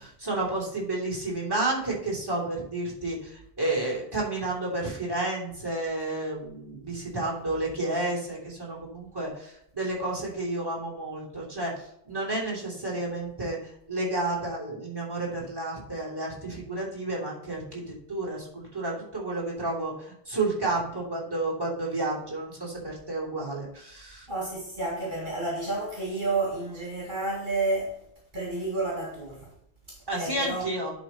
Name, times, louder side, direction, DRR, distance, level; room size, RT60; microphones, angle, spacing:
voice 1, 0.0-13.6 13.9-24.3 30.1-30.9, right 2 dB, 20° right, 3.0 m, -31 dB
voice 2, 24.3-28.0 28.3-29.5 29.9-30.6, right 2 dB, 50° right, 2.4 m, -30 dB
10.5 x 4.1 x 4.3 m
omnidirectional pair, 1.1 m